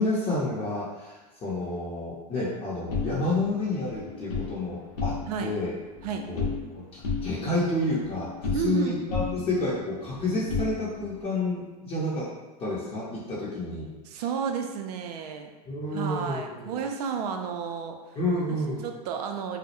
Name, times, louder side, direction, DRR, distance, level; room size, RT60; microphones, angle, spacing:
voice 1, 0.0-5.1 5.4-5.7 6.3-6.5 6.9-12.3 12.6-13.9 14.1-14.2 15.7-16.8 18.2-18.8, left 2 dB, 30° left, -7 dB, 0.6 m, -29 dB
sound 1, 2.9-4.5 4.9-5.5 5.8-6.7 7.0-8.8 9.1-11.2, left 4 dB, 80° left, 0.7 m, -33 dB
voice 2, 5.3-5.6 6.0-6.2 8.5-9.0 14.1-15.5 15.9-18.0 18.5-18.6 18.8-19.6, right 7 dB, 70° right, 4 dB, 0.4 m, -31 dB
2.2 x 2.0 x 2.8 m, 1.1 s
hypercardioid pair, 110°, 21 cm